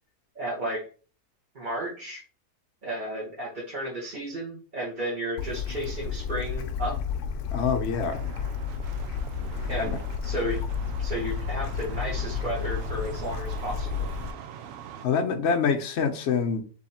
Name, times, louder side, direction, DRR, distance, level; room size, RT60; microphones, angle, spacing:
voice 1, 0.3-0.9 1.5-2.2 2.8-7.0 9.7-10.0 10.2-10.6 11.0-14.1, right 1 dB, 35° right, 1.3 m, -33 dB
Bird / Stream, 5.4-14.3, left 6 dB, 80° left, 1.1 m, -32 dB
voice 2, 7.5-8.2 9.7-10.0 15.0-16.6, left 6 dB, 60° left, 0.9 m, -26 dB
sound 1, 8.1-15.1, right 8 dB, 70° right, 0.9 m, -42 dB
3.5 x 3.1 x 4.2 m
omnidirectional pair, 1.6 m